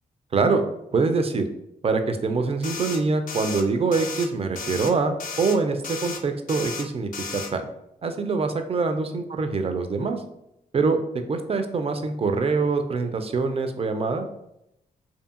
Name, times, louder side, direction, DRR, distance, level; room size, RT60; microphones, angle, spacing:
voice 1, 0.3-0.6 0.9-1.5 1.8-7.6 8.0-10.2 10.7-11.0 11.3-14.3, right 4 dB, 35° right, 7 dB, 0.4 m, -24 dB
sound 1, 2.6-3.0 3.3-3.6 3.9-4.3 4.5-4.9 5.2-5.6 5.8-6.2 6.5-6.8 7.1-7.5, left 5 dB, 50° left, 0.4 m, -34 dB
2.6 x 2.4 x 2.4 m, 0.83 s
supercardioid pair, 45°, 18 cm